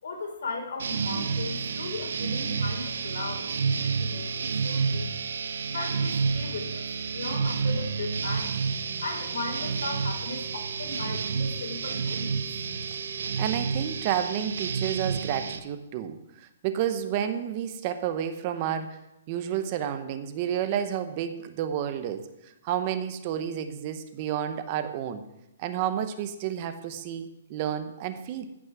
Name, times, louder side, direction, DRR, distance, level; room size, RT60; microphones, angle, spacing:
voice 1, 0.0-3.5 3.7-5.1 5.6-8.5 9.0-12.4, left 3 dB, 75° left, 3 dB, 3.8 m, -37 dB
sound 1, 0.8-15.6, right 5 dB, 70° right, 1.0 m, -30 dB
voice 2, 13.4-19.0 19.3-25.2 25.6-28.4, right 9 dB, 30° right, 9 dB, 0.8 m, -31 dB
15.0 x 6.2 x 6.1 m, 0.88 s
hypercardioid pair, 170°, 0 cm